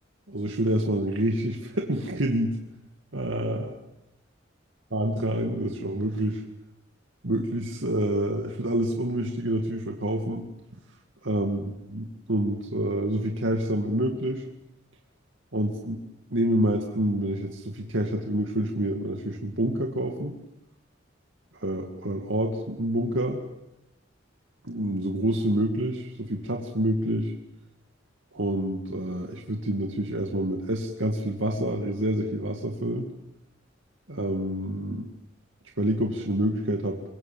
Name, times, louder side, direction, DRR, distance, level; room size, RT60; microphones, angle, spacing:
voice 1, 0.3-2.6 3.1-3.8 4.9-6.4 7.2-10.5 11.2-11.6 11.9-14.5 15.5-16.0 16.3-20.4 21.5-23.4 24.6-27.3 28.3-33.1 34.1-35.0 35.8-37.0, right 1 dB, 80° right, 2 dB, 2.2 m, -27 dB
26.5 x 22.5 x 7.6 m, 0.90 s
head